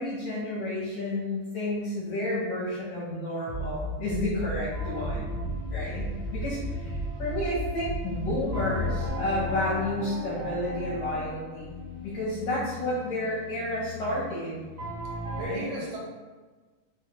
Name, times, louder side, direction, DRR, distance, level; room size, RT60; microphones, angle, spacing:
voice 1, 0.0-5.4 5.7-14.6 15.4-15.7, left 1 dB, 70° left, -7 dB, 1.9 m, -31 dB
Bass drum, 3.5-9.1, right 1 dB, 75° right, 1.3 m, -34 dB
sound 1, 4.7-15.5, left 2 dB, 55° right, 0.9 m, -37 dB
voice 2, 5.4-5.8 6.5-6.8 15.2-16.0, right 2 dB, 90° right, -2 dB, 2.1 m, -38 dB
4.7 x 2.1 x 2.8 m, 1.3 s
omnidirectional pair, 3.3 m